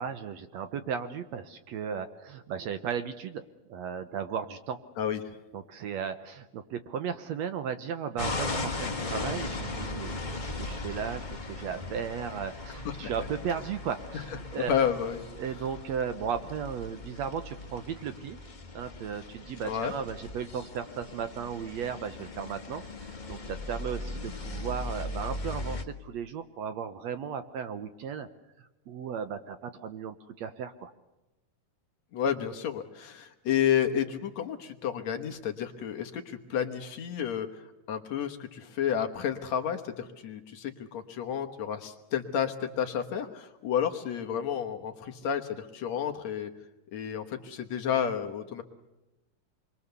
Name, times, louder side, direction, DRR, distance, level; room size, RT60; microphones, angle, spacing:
voice 1, 0.0-3.4 3.7-4.8 5.5-14.7 15.4-18.4 18.7-28.3 28.9-30.9, right 7 dB, 65° right, 9 dB, 1.9 m, -35 dB
voice 2, 5.0-5.4 13.0-13.1 14.6-15.2 19.7-19.9 32.1-37.6 37.9-46.5 46.9-48.6, left 8 dB, 65° left, 5 dB, 2.4 m, -31 dB
sound 1, 8.2-25.8, left 2 dB, 90° left, 0.4 m, -38 dB
27.0 x 23.0 x 6.9 m, 1.0 s
omnidirectional pair, 3.7 m